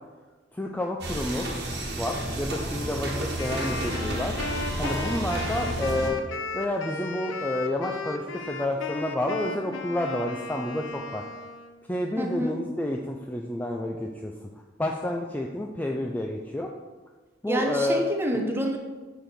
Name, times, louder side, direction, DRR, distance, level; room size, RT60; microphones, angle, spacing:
voice 1, 0.5-1.5 1.9-4.3 4.8-6.2 6.5-11.2 11.9-14.3 14.8-16.7 17.4-18.0, left 1 dB, 10° left, 1 dB, 0.4 m, -29 dB
sound 1, 1.0-6.1, right 1 dB, 55° right, 1.3 m, -31 dB
Wind instrument woodwind instrument, 3.4-11.8, left 3 dB, 80° left, 0.6 m, -35 dB
voice 2, 12.2-12.5 17.5-18.8, right 1 dB, 10° right, 2 dB, 0.8 m, -27 dB
5.0 x 4.8 x 5.8 m, 1.3 s
head